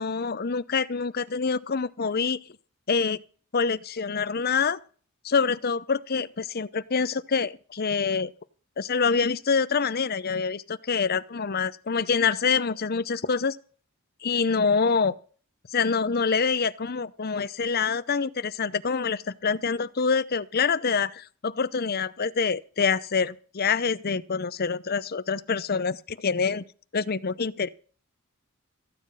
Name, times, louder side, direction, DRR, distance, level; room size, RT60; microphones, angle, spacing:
voice 1, 0.0-2.4 2.9-3.2 3.5-4.8 5.2-8.3 8.8-13.6 14.2-15.1 15.7-26.7 26.9-27.7, left 5 dB, 45° left, 0.7 m, -26 dB
14.5 x 9.7 x 5.6 m
head